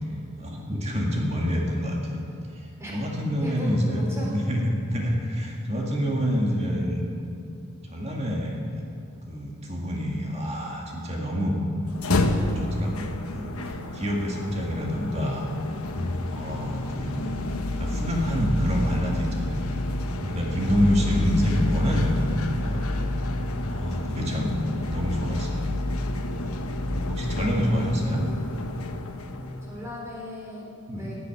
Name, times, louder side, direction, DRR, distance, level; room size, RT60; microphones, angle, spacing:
voice 1, 0.4-2.2 2.9-4.0 4.3-7.1 7.9-8.6 9.3-11.6 12.6-15.5 16.3-17.3 17.7-19.6 20.2-22.8 23.6-24.5 24.9-25.6 27.1-28.2 30.9-31.1, equal, 30° right, -1 dB, 2.0 m, -27 dB
voice 2, 3.4-4.3 21.0-21.2 28.0-28.1 29.6-31.2, equal, 10° right, -5 dB, 4.0 m, -38 dB
sound 1, 11.8-30.0, left 1 dB, 80° left, 1.1 m, -29 dB
15.0 x 8.1 x 9.6 m, 2.6 s
head